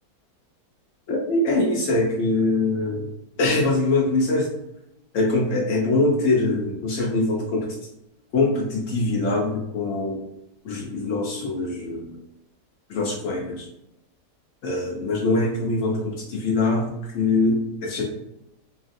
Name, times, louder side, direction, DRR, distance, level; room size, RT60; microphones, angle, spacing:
voice 1, 1.1-3.1 3.4-4.5 5.1-7.7 8.3-10.2 10.6-12.1 12.9-13.7 14.6-18.0, left 2 dB, 65° left, -1 dB, 0.7 m, -23 dB
3.2 x 2.4 x 2.5 m, 0.84 s
omnidirectional pair, 1.8 m